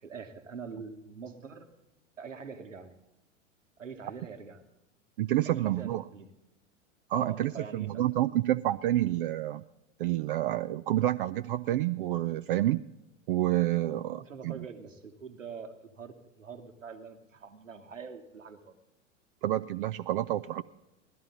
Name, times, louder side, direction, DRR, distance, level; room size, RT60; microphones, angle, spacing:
voice 1, 0.0-1.7 2.2-2.9 3.8-4.6 5.4-6.3 7.1-8.3 14.1-18.7, right 5 dB, 85° right, 6 dB, 1.3 m, -44 dB
voice 2, 5.2-6.0 7.1-9.6 10.0-12.8 13.3-14.7 19.4-20.6, right 14 dB, 45° right, 10 dB, 0.4 m, -28 dB
16.0 x 12.5 x 3.8 m, 0.91 s
figure-of-eight pair, 95°, 38 cm